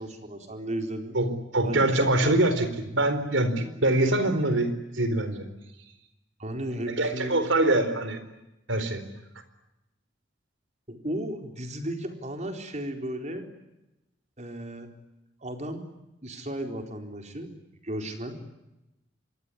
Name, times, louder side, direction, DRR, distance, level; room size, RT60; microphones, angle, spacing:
voice 1, 0.0-1.2 1.6-2.3 6.4-7.4 10.9-13.4 14.4-14.9 15.4-15.9 16.2-17.5 17.8-18.4, right 1 dB, 40° right, 5 dB, 4.2 m, -34 dB
voice 2, 1.1-5.5 7.0-8.2 8.7-9.0, right 1 dB, 75° right, 11 dB, 4.3 m, -24 dB
26.5 x 22.5 x 9.9 m, 0.93 s
head